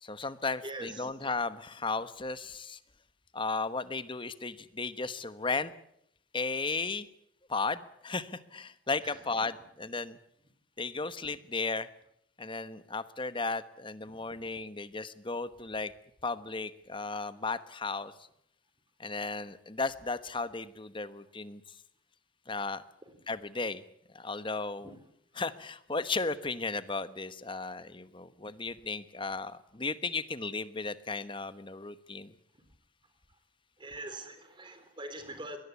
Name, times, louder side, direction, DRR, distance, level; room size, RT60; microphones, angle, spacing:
voice 1, 0.0-2.8 3.3-5.7 6.3-7.1 7.5-10.2 10.8-11.9 12.4-15.9 16.2-18.1 19.0-21.8 22.5-22.8 23.3-23.8 24.1-25.0 25.3-32.3, left 3 dB, 25° left, 13 dB, 1.1 m, -35 dB
voice 2, 33.8-35.6, right 1 dB, 25° right, 9 dB, 3.5 m, -42 dB
23.0 x 18.5 x 8.4 m, 0.74 s
head